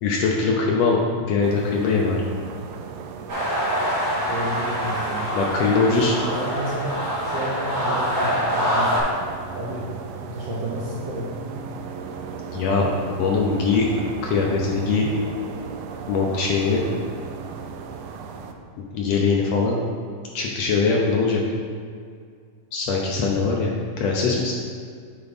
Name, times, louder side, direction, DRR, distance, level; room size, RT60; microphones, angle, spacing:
voice 1, 0.0-2.2 5.3-6.1 12.5-12.9 13.2-13.9 14.2-15.1 16.1-16.8 18.9-19.8 20.3-21.4 22.7-23.7 24.0-24.5, left 4 dB, 75° left, -1 dB, 1.6 m, -21 dB
sound 1, 1.4-18.5, right 5 dB, 85° right, 1.5 m, -36 dB
sound 2, 3.3-9.0, equal, 35° right, 1.9 m, -25 dB
voice 2, 4.3-7.0 7.2-9.0 9.5-9.9 10.2-11.6, right 1 dB, 70° right, -7 dB, 1.1 m, -32 dB
8.7 x 4.5 x 4.1 m, 2.1 s
omnidirectional pair, 3.5 m